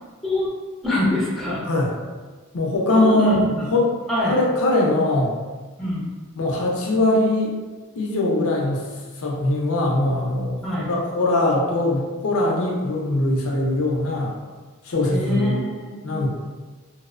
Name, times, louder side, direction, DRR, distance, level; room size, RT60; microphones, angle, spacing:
voice 1, 0.8-1.6 2.9-3.7 4.1-4.4 5.8-6.1 10.6-10.9 15.0-16.3, left 1 dB, ahead, -7 dB, 0.5 m, -25 dB
voice 2, 2.5-3.4 3.7-3.9 4.3-5.3 6.4-7.6 8.0-8.9 9.2-10.6 10.9-14.3 14.8-15.7 16.0-16.3, left 2 dB, 75° left, -2 dB, 0.5 m, -21 dB
2.6 x 2.0 x 2.4 m, 1.4 s
head